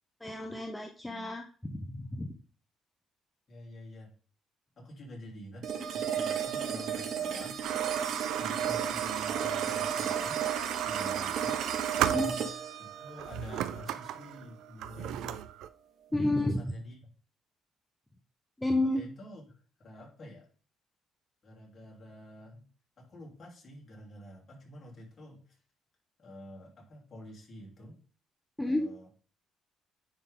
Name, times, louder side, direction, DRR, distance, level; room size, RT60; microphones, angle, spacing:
voice 1, 0.2-2.3 12.1-12.5 16.1-16.6 18.6-19.0 28.6-28.9, left 1 dB, 5° left, 3 dB, 0.7 m, -31 dB
voice 2, 3.5-4.1 4.8-5.7 5.9-7.6 8.3-10.4 10.8-11.6 12.8-15.5 16.1-17.0 18.8-19.4 19.8-20.5 21.4-22.7 23.0-25.6 26.2-28.0 28.6-29.1, equal, 40° left, -3 dB, 3.2 m, -48 dB
sound 1, 5.6-14.7, right 8 dB, 65° right, 0.9 m, -34 dB
sound 2, 7.6-12.7 13.2-15.7, right 11 dB, 90° right, 0.4 m, -35 dB
9.9 x 3.6 x 3.8 m, 0.40 s
cardioid pair, 120°, 0 cm